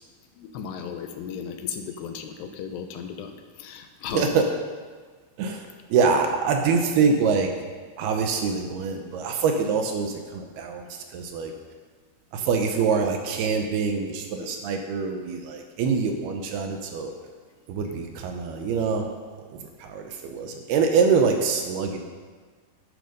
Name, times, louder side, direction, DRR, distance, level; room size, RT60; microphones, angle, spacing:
voice 1, 0.4-3.3 3.6-4.5 14.4-14.6, left 7 dB, 80° left, 6 dB, 2.8 m, -35 dB
voice 2, 5.4-7.5 8.0-11.5 12.3-17.1 17.7-19.1 19.5-22.0, right 5 dB, 75° right, 4 dB, 2.6 m, -25 dB
11.5 x 10.0 x 5.3 m, 1.5 s
omnidirectional pair, 5.0 m